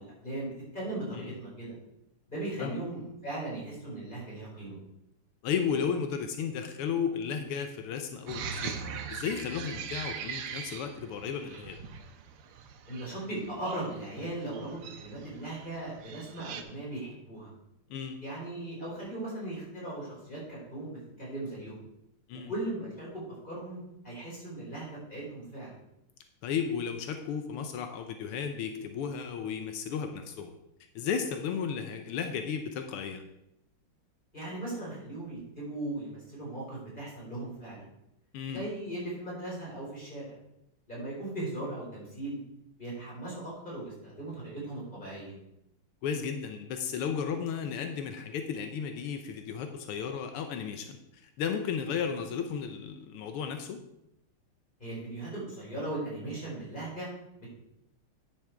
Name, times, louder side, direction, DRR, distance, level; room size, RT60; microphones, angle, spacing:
voice 1, 0.0-1.7 2.3-4.7 12.9-17.5 18.2-21.8 22.5-25.7 34.3-37.8 38.5-40.3 40.9-42.4 42.8-45.3 54.8-57.1, right 2 dB, 20° left, -5 dB, 4.4 m, -38 dB
voice 2, 5.4-11.8 17.9-18.1 22.3-22.5 26.4-30.5 31.0-33.2 38.3-38.6 46.0-53.8, left 7 dB, 85° left, 6 dB, 1.7 m, -34 dB
sound 1, 8.3-16.6, right 7 dB, 85° right, 1.8 m, -41 dB
10.0 x 6.5 x 4.6 m, 0.83 s
omnidirectional pair, 2.4 m